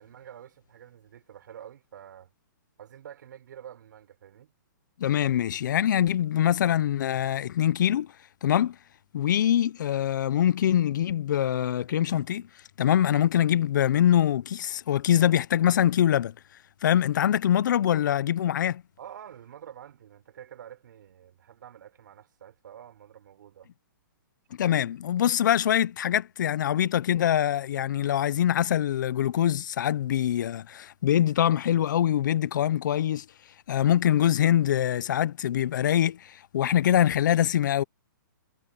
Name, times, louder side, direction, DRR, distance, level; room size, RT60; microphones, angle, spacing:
voice 1, 0.0-2.3 2.8-4.5 19.0-23.7, right 10 dB, 65° right, 5.0 m, -47 dB
voice 2, 5.0-8.1 8.4-8.8 9.1-12.5 12.8-16.3 16.8-18.8 24.6-33.2 33.7-37.8, left 10 dB, 65° left, 0.7 m, -24 dB
hypercardioid pair, 145°, 11 cm